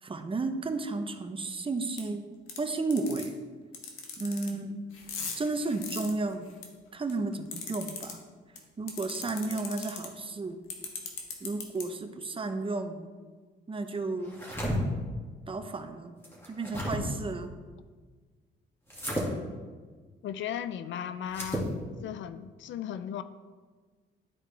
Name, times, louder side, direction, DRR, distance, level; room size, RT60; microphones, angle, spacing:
voice 1, 0.0-2.2 2.6-3.3 4.2-4.8 5.4-6.5 6.9-8.2 8.8-10.6 11.4-13.1 13.7-14.4 15.5-16.1 16.5-17.5, right 3 dB, 25° right, 7 dB, 0.7 m, -33 dB
sound 1, 2.0-2.1 2.5-2.6 2.9-3.3 3.7-4.5 4.9-6.6 7.1-8.1 8.6-8.7 8.9-10.1 10.7-11.8, left 6 dB, 90° left, 1.3 m, -38 dB
sound 2, 14.2-14.8 16.2-17.0 18.9-19.3 21.3-21.7, equal, 10° left, 2.2 m, -33 dB
voice 2, 20.2-21.7 22.0-23.2, left 9 dB, 70° left, 13 dB, 0.5 m, -36 dB
11.5 x 4.8 x 3.4 m, 1.5 s
cardioid pair, 90°, 20 cm